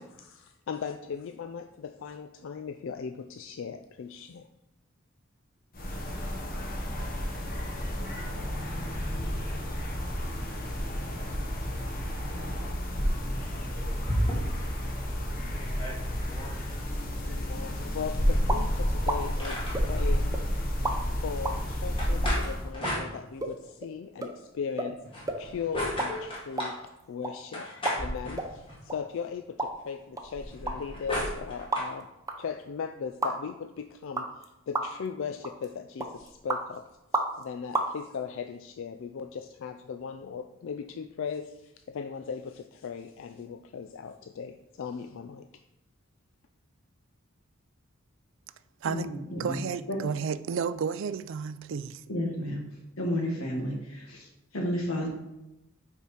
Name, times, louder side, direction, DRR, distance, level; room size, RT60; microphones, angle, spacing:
voice 1, 0.0-4.5 17.2-20.4 21.2-25.0 25.4-26.8 27.1-27.7 27.9-32.1 32.4-36.8 37.4-45.5, left 6 dB, 65° left, 0.4 m, -38 dB
sound 1, 5.7-22.7, equal, 45° left, 1.0 m, -31 dB
sound 2, 13.3-14.8 15.2-15.3 15.5-16.6 18.2-20.1 22.0-23.7 25.0-26.8 27.5-28.9 30.4-31.9, left 1 dB, 25° left, 1.7 m, -36 dB
sound 3, 18.5-18.7 19.1-19.2 19.7-20.4 20.8-21.0 21.5-21.6 22.2-22.3 22.8-22.9 23.4-23.5 23.8-23.9 24.2-24.3 24.8-24.9 25.3-25.4 25.8-26.1 26.4-27.3 27.9-28.5 28.9-29.0 29.6-29.7 30.2-32.0 32.3-32.4 33.2-33.3 34.2-34.4 34.7-35.1 35.4-35.7 36.0-36.6 37.1-37.4 37.7-37.9, right 2 dB, 15° right, 0.6 m, -31 dB
voice 2, 48.8-49.6 49.9-50.0 52.1-52.6 53.0-55.1, equal, 90° left, 1.8 m, -31 dB
voice 3, 49.4-52.0, right 6 dB, 65° right, 0.3 m, -32 dB
5.5 x 4.6 x 5.0 m
head